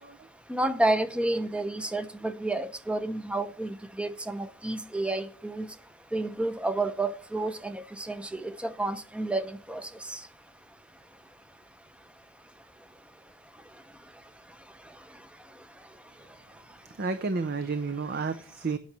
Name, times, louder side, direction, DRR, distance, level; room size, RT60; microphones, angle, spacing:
voice 1, 0.5-5.7 6.1-10.2, right 2 dB, 5° right, 0.7 m, -30 dB
voice 2, 17.0-18.8, right 4 dB, 50° right, 0.6 m, -31 dB
8.8 x 5.6 x 7.7 m
head